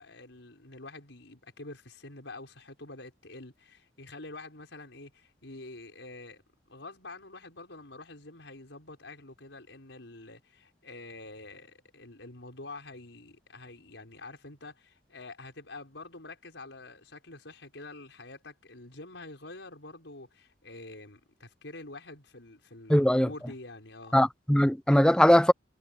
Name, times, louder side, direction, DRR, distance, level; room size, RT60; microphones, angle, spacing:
voice 1, 0.0-6.4 6.7-24.2, left 2 dB, 85° left, 5.4 m, -47 dB
voice 2, 22.9-23.3 24.1-25.5, equal, 5° left, 0.6 m, -20 dB
head